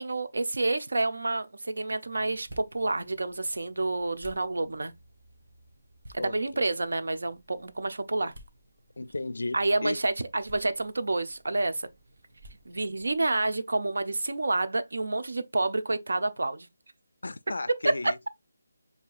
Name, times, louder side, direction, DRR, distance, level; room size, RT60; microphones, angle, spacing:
voice 1, 0.0-4.9 6.1-8.3 9.5-11.9 12.7-16.7 17.7-18.1, right 2 dB, 65° right, 0.7 m, -29 dB
sound 1, 2.0-13.2, right 1 dB, 45° right, 1.1 m, -55 dB
voice 2, 6.2-6.7 9.0-10.0 17.2-18.3, left 2 dB, 70° left, 0.3 m, -34 dB
6.7 x 2.7 x 2.4 m
figure-of-eight pair, 180°, 0 cm